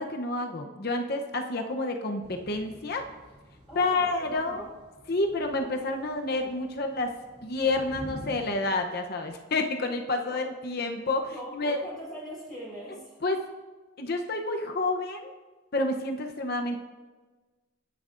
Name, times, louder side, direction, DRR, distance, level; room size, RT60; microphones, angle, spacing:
voice 1, 0.0-3.0 3.8-4.7 5.1-7.1 7.4-11.8 13.2-13.4 14.0-15.3 15.7-16.8, left 2 dB, 55° left, 4 dB, 0.8 m, -29 dB
Thunder / Rain, 2.2-8.3, equal, 30° right, 2.5 m, -49 dB
voice 2, 3.7-4.7 9.8-10.5 11.3-13.2, equal, ahead, -9 dB, 3.9 m, -42 dB
21.0 x 10.5 x 2.6 m, 1.3 s
head